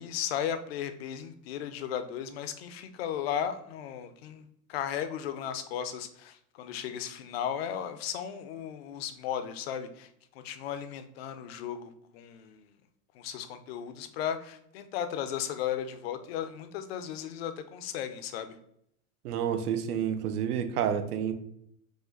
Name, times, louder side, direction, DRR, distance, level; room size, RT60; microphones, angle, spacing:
voice 1, 0.0-12.7 13.1-18.6, left 9 dB, 45° left, 10 dB, 0.5 m, -35 dB
voice 2, 19.2-21.3, right 8 dB, 85° right, 9 dB, 0.8 m, -29 dB
4.9 x 2.4 x 3.8 m, 0.72 s
supercardioid pair, 160°, 44 cm